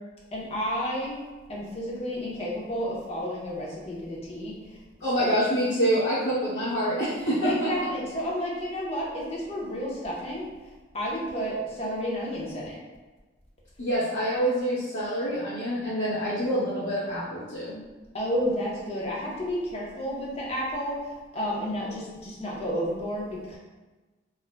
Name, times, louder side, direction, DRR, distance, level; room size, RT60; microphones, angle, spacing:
voice 1, 0.3-1.2 1.5-4.8 5.2-5.4 7.4-12.8 18.1-23.6, equal, 30° left, -4 dB, 0.6 m, -31 dB
voice 2, 5.0-7.9 13.8-17.7, equal, 70° left, -11 dB, 0.8 m, -26 dB
2.4 x 2.0 x 3.2 m, 1.2 s
head